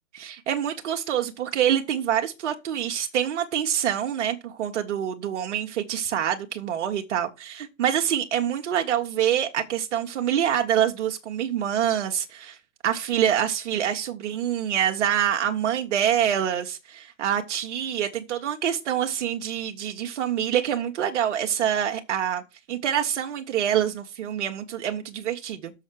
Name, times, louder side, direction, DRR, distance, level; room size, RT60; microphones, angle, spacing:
voice 1, 0.1-12.6 12.8-22.4 22.7-25.7, right 10 dB, 60° right, 1.3 m, -26 dB
6.7 x 6.3 x 6.2 m
hypercardioid pair, 125°, 39 cm